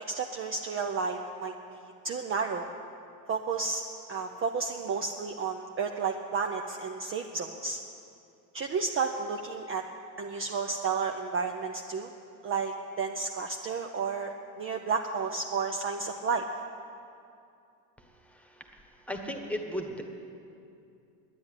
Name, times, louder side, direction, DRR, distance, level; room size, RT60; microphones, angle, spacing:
voice 1, 0.1-2.7 3.3-3.8 4.1-7.8 8.5-9.8 10.2-12.1 12.4-16.5, right 5 dB, 30° right, 3 dB, 0.6 m, -32 dB
voice 2, 18.0-20.0, equal, 5° left, 3 dB, 1.4 m, -37 dB
10.5 x 9.6 x 9.7 m, 2.6 s
supercardioid pair, 115°, 45 cm